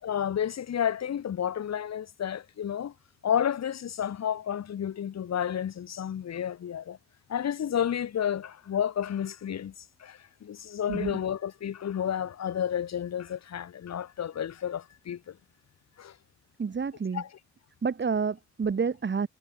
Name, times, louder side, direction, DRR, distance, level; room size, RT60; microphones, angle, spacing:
voice 1, 0.0-2.9 3.2-7.0 7.3-9.7 10.0-15.3 16.0-16.1 17.1-17.4, left 9 dB, 60° left, 6.2 m, -31 dB
voice 2, 16.6-17.2 17.8-19.3, right 5 dB, 35° right, 5.5 m, -29 dB
cardioid pair, 90°, 30 cm